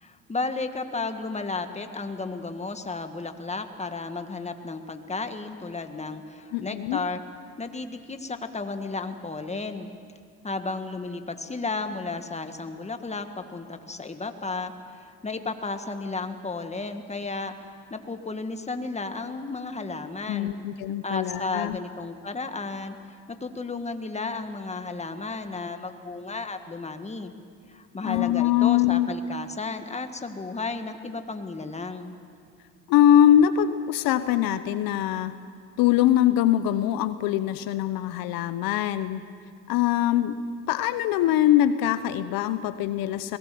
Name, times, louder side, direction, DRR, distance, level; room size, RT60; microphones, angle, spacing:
voice 1, 0.0-7.2 7.6-9.9 10.4-20.5 21.0-23.0 23.4-27.3 27.7-32.1, left 3 dB, 20° left, 7 dB, 1.7 m, -33 dB
voice 2, 6.5-7.0 20.3-21.8 28.0-29.1 32.9-35.3 35.8-39.2 39.7-40.4 40.7-43.4, left 11 dB, 75° left, 12 dB, 0.9 m, -22 dB
22.0 x 18.5 x 7.7 m, 2.2 s
supercardioid pair, 80°, 35 cm